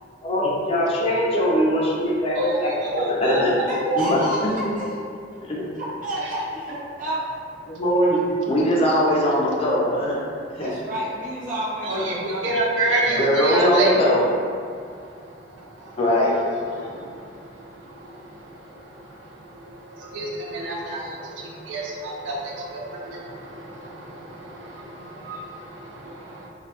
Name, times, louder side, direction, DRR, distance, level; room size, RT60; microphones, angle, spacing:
voice 1, 0.2-3.5 4.0-4.5 5.4-5.6 7.7-10.1 10.6-10.7 13.1-14.2 16.0-16.3, equal, 30° left, -4 dB, 0.4 m, -21 dB
voice 2, 2.3-3.4 3.8-4.0 11.8-13.9 15.8-16.0 16.8-26.5, right 2 dB, 85° right, -3 dB, 0.5 m, -29 dB
voice 3, 3.7-5.0 5.7-7.3 10.6-12.5, equal, 45° right, -7 dB, 0.7 m, -30 dB
2.2 x 2.2 x 2.8 m, 2.2 s
head